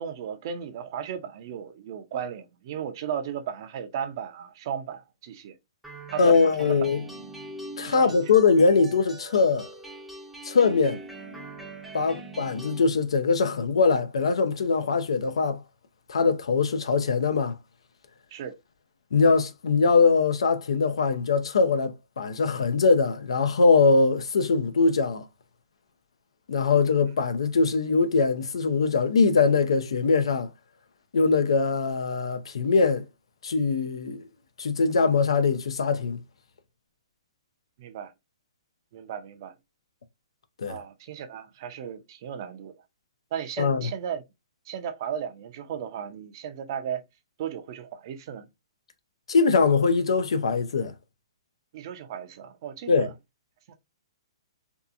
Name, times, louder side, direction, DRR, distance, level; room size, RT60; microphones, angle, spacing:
voice 1, 0.0-5.6 6.1-6.8 7.9-8.2 12.0-12.2 18.3-18.5 37.8-38.1 38.9-39.5 40.7-42.7 43.3-44.2 44.7-47.0 47.4-48.5 51.7-53.1, right 8 dB, 50° right, 0.5 m, -35 dB
sound 1, 5.8-12.8, right 2 dB, ahead, 0.5 m, -42 dB
voice 2, 6.2-7.0 7.8-9.7 10.4-11.0 11.9-15.6 16.1-17.5 19.1-25.2 26.5-30.5 31.1-33.0 33.4-34.2 34.6-36.2 40.6-40.8 43.6-43.9 49.3-50.9 52.9-53.1, left 4 dB, 80° left, 0.4 m, -22 dB
2.7 x 2.3 x 2.4 m
hypercardioid pair, 140°, 3 cm